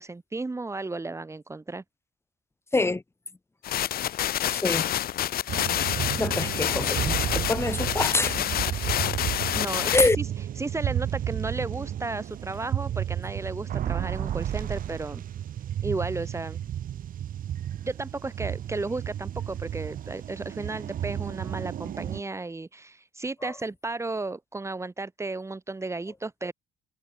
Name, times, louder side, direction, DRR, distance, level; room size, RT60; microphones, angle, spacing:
voice 1, 0.0-1.8 9.5-10.3 10.6-15.2 15.8-16.6 17.8-26.5, right 3 dB, 15° right, 4.4 m, -34 dB
sound 1, 3.6-10.1, left 12 dB, 60° left, 2.6 m, -28 dB
voice 2, 4.5-4.8 6.2-8.4 9.9-10.2, left 3 dB, 15° left, 3.0 m, -25 dB
sound 2, 5.5-22.2, right 10 dB, 55° right, 2.1 m, -32 dB
cardioid pair, 110°, 17 cm